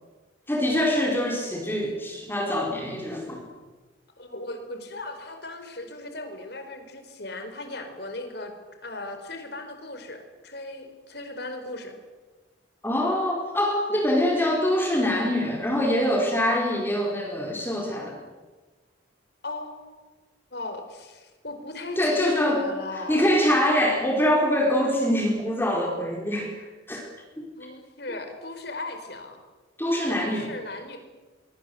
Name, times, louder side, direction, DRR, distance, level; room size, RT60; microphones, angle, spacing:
voice 1, 0.5-3.4 12.8-18.1 22.0-22.6 23.1-26.5 26.9-27.0 29.8-30.5, left 1 dB, 10° left, 0 dB, 4.6 m, -24 dB
voice 2, 4.2-8.5 8.8-12.0 19.4-20.1 20.5-23.2 27.6-29.4 30.1-31.0, left 2 dB, 55° left, 6 dB, 4.6 m, -37 dB
24.5 x 24.0 x 7.9 m, 1.2 s
head